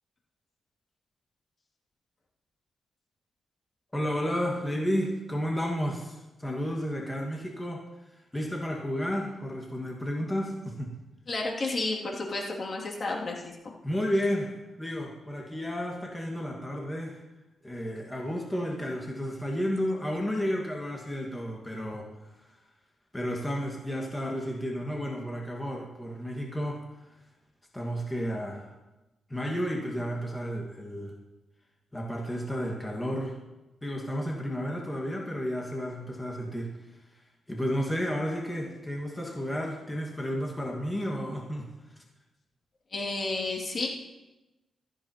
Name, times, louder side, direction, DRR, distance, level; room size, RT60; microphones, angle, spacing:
voice 1, 3.9-10.9 13.8-17.2 17.6-22.5 23.1-27.1 27.7-28.7 29.3-31.1 31.9-33.4 33.8-37.2 37.5-41.7, equal, 10° left, -1 dB, 1.8 m, -32 dB
voice 2, 11.3-13.7 42.9-43.9, left 2 dB, 45° left, -1 dB, 2.7 m, -31 dB
16.0 x 14.0 x 3.0 m, 1.1 s
cardioid pair, 100°, 0 cm